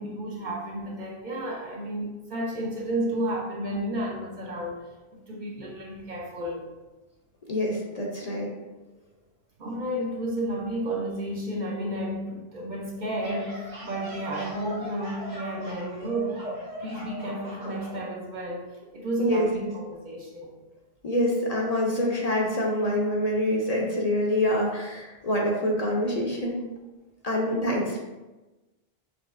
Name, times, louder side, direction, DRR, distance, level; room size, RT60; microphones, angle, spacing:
voice 1, 0.0-4.8 5.1-6.7 9.6-18.7 18.9-20.5 27.4-27.8, right 1 dB, 55° right, -1 dB, 0.7 m, -32 dB
voice 2, 7.5-8.5 19.2-19.7 21.0-26.6 27.2-28.0, left 1 dB, 45° left, -2 dB, 0.7 m, -26 dB
sound 1, 13.0-18.0, left 1 dB, 85° right, 1.8 m, -39 dB
5.9 x 2.9 x 2.4 m, 1.1 s
omnidirectional pair, 1.1 m